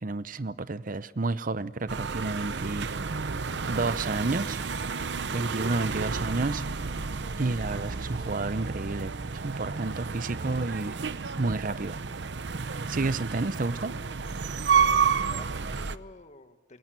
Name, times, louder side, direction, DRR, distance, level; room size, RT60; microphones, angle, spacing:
voice 1, 0.0-2.9 3.7-4.6 5.3-6.6 7.4-10.9 11.4-12.0 12.9-13.9, right 3 dB, 50° right, 15 dB, 0.8 m, -30 dB
sound 1, 1.9-16.0, right 5 dB, 85° right, 0.8 m, -31 dB
voice 2, 12.7-13.2 14.7-16.8, left 2 dB, 40° left, 8 dB, 1.8 m, -49 dB
28.0 x 22.5 x 9.0 m, 1.2 s
head